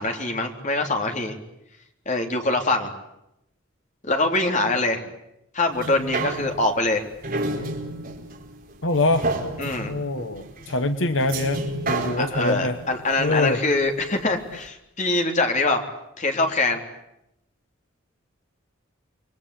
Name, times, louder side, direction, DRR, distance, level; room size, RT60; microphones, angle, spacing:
voice 1, 0.0-1.4 2.1-2.9 4.1-5.0 5.5-7.0 9.6-9.9 12.2-15.8 16.2-16.8, left 2 dB, 35° left, 3 dB, 3.7 m, -23 dB
sound 1, 5.7-14.2 14.7-14.8, right 2 dB, 45° right, 4.5 m, -31 dB
voice 2, 8.8-9.3 9.9-11.6 11.9-12.8 13.2-13.6, left 2 dB, 70° left, 8 dB, 1.3 m, -24 dB
29.0 x 23.0 x 8.6 m, 0.84 s
head